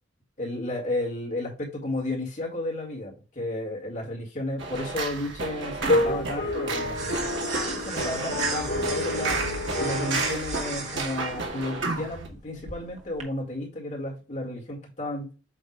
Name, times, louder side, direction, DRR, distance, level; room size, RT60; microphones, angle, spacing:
voice 1, 0.4-9.4 9.8-15.3, left 1 dB, 40° left, -2 dB, 2.1 m, -33 dB
sound 1, 4.6-12.3, right 3 dB, 80° right, 1.7 m, -32 dB
sound 2, 4.9-13.2, right 4 dB, 40° right, 1.3 m, -37 dB
sound 3, 5.8-11.7, left 2 dB, 75° left, 2.8 m, -30 dB
8.0 x 2.8 x 4.7 m, 0.35 s
head